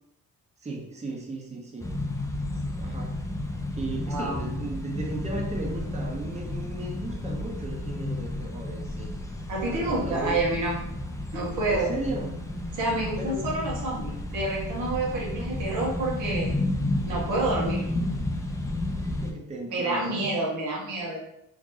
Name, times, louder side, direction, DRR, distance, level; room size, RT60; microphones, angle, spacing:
voice 1, 0.6-1.9 2.5-3.2 3.7-9.1 9.6-10.4 11.7-12.4 13.2-13.5 18.9-20.4, right 2 dB, 20° right, 0 dB, 0.8 m, -36 dB
sound 1, 1.8-19.3, left 1 dB, 10° left, 0.5 m, -32 dB
voice 2, 4.1-4.4 9.5-10.7 11.3-11.9 12.7-16.5 17.1-17.9 19.7-21.2, right 2 dB, 85° right, -4 dB, 1.3 m, -28 dB
3.1 x 2.6 x 3.8 m, 0.78 s
cardioid pair, 90°, 30 cm